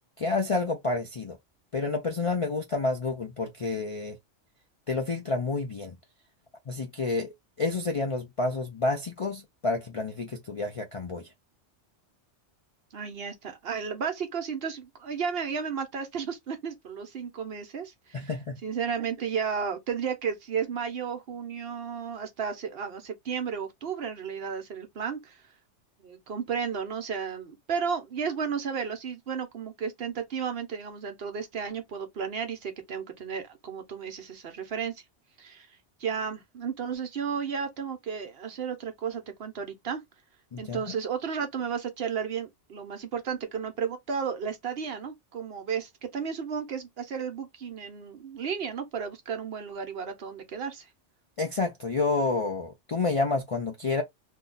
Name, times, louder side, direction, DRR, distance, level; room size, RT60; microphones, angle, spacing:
voice 1, 0.2-1.4 1.7-4.2 4.9-6.0 6.7-11.3 18.1-18.6 40.5-40.9 51.4-54.0, left 3 dB, 45° left, 0.4 m, -29 dB
voice 2, 12.9-18.3 18.6-25.4 26.0-34.9 35.4-35.7 36.0-40.0 40.6-50.9, right 6 dB, 60° right, 0.9 m, -33 dB
2.7 x 2.2 x 3.7 m
omnidirectional pair, 1.2 m